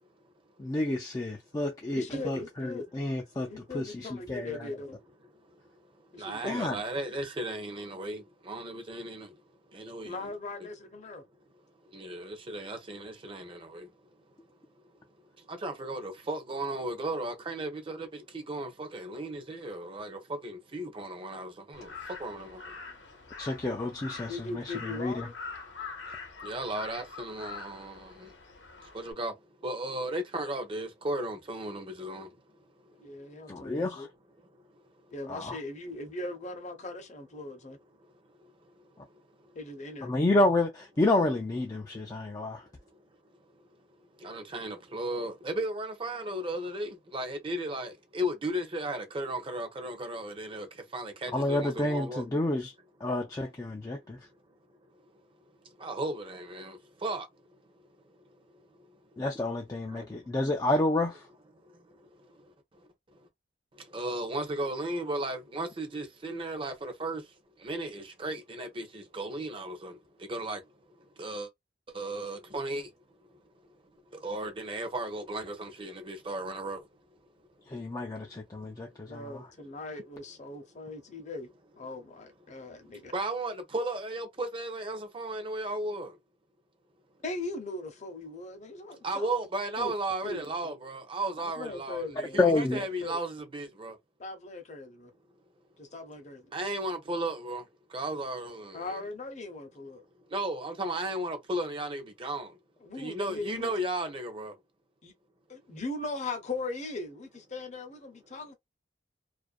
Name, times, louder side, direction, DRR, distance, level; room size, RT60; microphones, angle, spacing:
voice 1, 0.6-2.7 2.9-3.5 3.7-4.5 6.4-6.8 23.4-25.3 33.5-34.1 35.3-35.6 40.0-42.6 51.3-52.7 53.0-54.2 59.2-61.2 77.7-79.4 92.4-92.8, left 2 dB, 20° left, 0.3 m, -29 dB
voice 2, 2.0-2.8 3.5-5.0 6.1-6.6 10.0-11.2 24.0-25.3 33.0-34.1 35.1-37.8 39.5-40.1 79.1-81.5 81.8-83.1 87.2-89.3 89.8-89.9 90.2-90.7 91.4-93.2 94.2-95.1 95.8-96.5 98.7-100.0 102.8-103.7 105.0-105.1 105.5-108.5, left 2 dB, 40° left, 0.7 m, -39 dB
voice 3, 6.2-9.3 9.7-10.3 11.9-13.9 15.5-21.9 22.2-22.6 26.4-28.3 28.9-29.3 29.6-32.3 44.2-50.7 50.9-52.2 55.8-57.3 59.9-60.1 63.9-67.2 67.6-69.9 70.3-70.6 71.2-71.5 71.9-72.9 74.2-76.8 83.1-86.1 89.0-93.9 96.5-97.6 97.9-99.0 100.3-102.5 103.0-104.5, right 1 dB, 30° right, 0.6 m, -35 dB
Crow, 21.7-29.1, left 4 dB, 75° left, 0.7 m, -44 dB
2.4 x 2.1 x 2.4 m
head